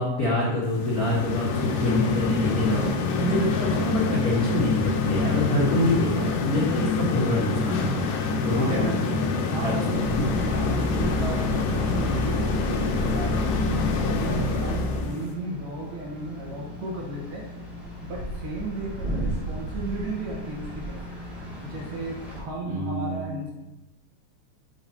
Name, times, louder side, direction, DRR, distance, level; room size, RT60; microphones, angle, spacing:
voice 1, 0.0-8.0 8.4-9.2 9.6-9.7 10.1-10.3 22.7-23.4, left 1 dB, 60° left, -8 dB, 0.9 m, -26 dB
sound 1, 0.7-15.3, left 4 dB, 85° left, 2.3 m, -26 dB
voice 2, 8.4-9.0 9.5-10.0 10.4-17.4 18.0-21.0 21.6-23.5, right 2 dB, 75° right, -3 dB, 2.9 m, -34 dB
sound 2, 9.7-22.4, equal, ahead, 0.8 m, -36 dB
sound 3, 9.9-15.1, left 1 dB, 50° right, 2.1 m, -30 dB
6.9 x 5.8 x 2.8 m, 1.0 s
omnidirectional pair, 3.8 m